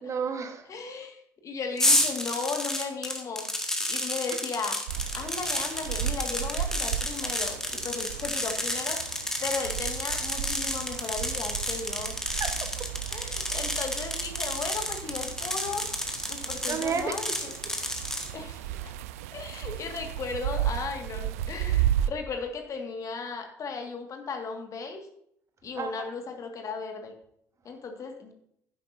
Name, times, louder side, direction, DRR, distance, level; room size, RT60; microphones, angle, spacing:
voice 1, 0.0-0.7 12.2-12.9 16.7-17.2 25.8-26.1, right 5 dB, 40° right, 8 dB, 1.2 m, -32 dB
voice 2, 0.7-3.5 3.9-4.8 5.1-12.3 13.1-15.8 16.3-17.5 18.3-18.9 19.3-25.0 25.6-27.1 27.7-28.3, left 4 dB, 45° left, 4 dB, 1.8 m, -36 dB
sound 1, 1.8-18.3, left 1 dB, 5° left, 1.6 m, -31 dB
sound 2, 4.9-22.1, right 11 dB, 75° right, 0.4 m, -34 dB
11.0 x 9.7 x 2.7 m, 0.73 s
figure-of-eight pair, 55°, 8 cm